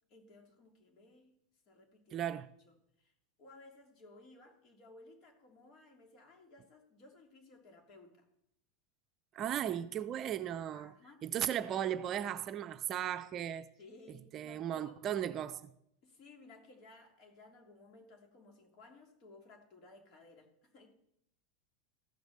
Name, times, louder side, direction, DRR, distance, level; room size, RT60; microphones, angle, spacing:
voice 1, 0.1-1.4 1.7-2.3 2.6-3.1 3.4-8.3 10.7-11.2 13.8-15.0 16.0-20.9, left 2 dB, 45° left, 3.1 m, -58 dB
voice 2, 2.1-2.5 9.3-10.9 11.2-13.7 14.3-15.7, right 10 dB, 35° right, 0.6 m, -36 dB
14.5 x 6.4 x 6.7 m
supercardioid pair, 120°, 0 cm